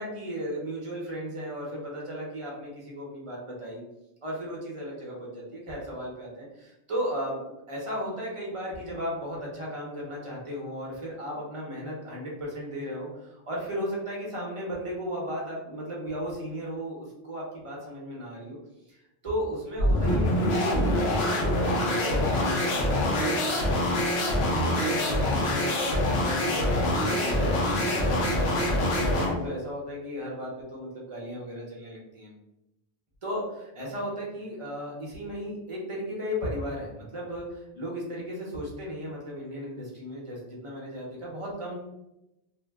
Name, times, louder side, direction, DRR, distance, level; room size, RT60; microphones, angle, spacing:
voice 1, 0.0-3.8 4.2-7.4 7.7-18.6 18.9-19.0 19.2-32.3 33.2-41.8, equal, 35° right, -3 dB, 0.8 m, -36 dB
sound 1, 19.8-29.4, left 1 dB, 75° left, 1.0 m, -25 dB
2.6 x 2.1 x 3.4 m, 0.91 s
omnidirectional pair, 1.1 m